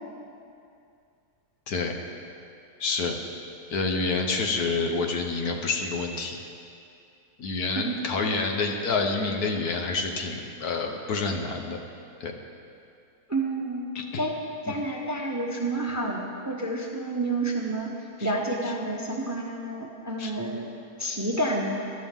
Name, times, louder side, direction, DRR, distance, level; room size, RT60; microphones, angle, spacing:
voice 1, 1.7-2.0 2.8-3.2 3.7-6.4 7.4-11.8 12.2-12.3 13.9-14.2 14.7-14.8 18.2-18.3 20.2-20.3, left 3 dB, 70° left, 3 dB, 1.6 m, -28 dB
voice 2, 13.3-13.9 14.2-14.3 14.7-17.9 18.2-20.7 21.0-21.9, right 2 dB, 15° right, 0 dB, 0.9 m, -29 dB
20.5 x 11.5 x 3.7 m, 2.5 s
omnidirectional pair, 1.7 m